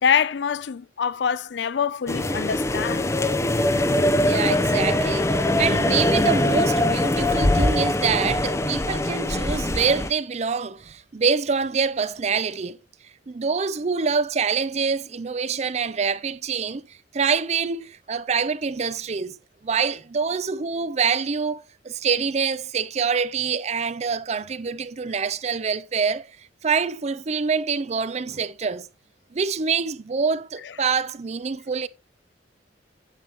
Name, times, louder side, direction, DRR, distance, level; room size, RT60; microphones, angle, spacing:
voice 1, 0.0-3.1, left 7 dB, 70° left, 0.4 m, -24 dB
sound 1, 2.1-10.1, left 1 dB, 15° left, 0.6 m, -22 dB
voice 2, 4.2-12.8 13.3-16.8 17.1-19.4 19.6-26.3 26.6-28.9 29.3-31.9, right 5 dB, 35° right, 0.5 m, -25 dB
9.7 x 8.1 x 2.9 m
head